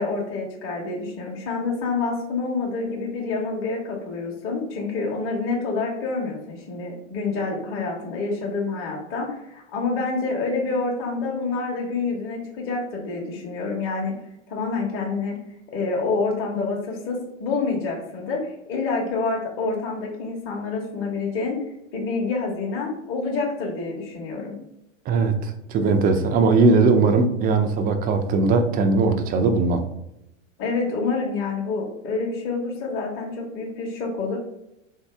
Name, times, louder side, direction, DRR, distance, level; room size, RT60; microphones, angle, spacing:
voice 1, 0.0-14.2 14.5-15.4 15.7-21.6 21.9-24.6 30.6-34.4, left 3 dB, 35° left, -2 dB, 1.1 m, -27 dB
voice 2, 25.1-29.8, right 4 dB, 25° right, 6 dB, 0.4 m, -19 dB
3.8 x 2.8 x 3.4 m, 0.85 s
hypercardioid pair, 100°, 37 cm